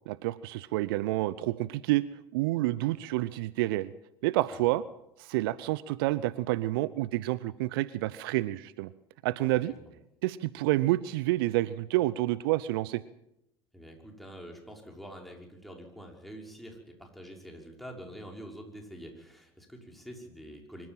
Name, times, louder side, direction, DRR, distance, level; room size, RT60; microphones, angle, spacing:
voice 1, 0.1-2.1 2.3-3.9 4.2-4.8 5.2-8.9 9.2-9.7 10.2-13.0, right 17 dB, 65° right, 18 dB, 0.7 m, -29 dB
voice 2, 13.7-20.9, equal, ahead, 1 dB, 5.9 m, -46 dB
25.0 x 14.0 x 7.6 m, 0.83 s
figure-of-eight pair, 70°, 13 cm